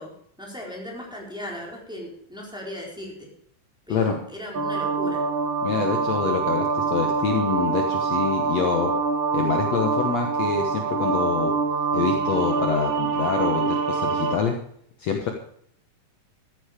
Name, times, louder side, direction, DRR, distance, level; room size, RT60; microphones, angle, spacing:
voice 1, 0.0-3.3 3.9-5.2, left 1 dB, ahead, -2 dB, 3.9 m, -37 dB
sound 1, 4.5-14.4, right 5 dB, 60° right, 1.3 m, -25 dB
voice 2, 5.6-8.9 9.3-11.5 11.9-14.6 15.0-15.3, left 6 dB, 60° left, 3 dB, 2.2 m, -26 dB
14.0 x 10.5 x 5.0 m, 0.67 s
omnidirectional pair, 3.8 m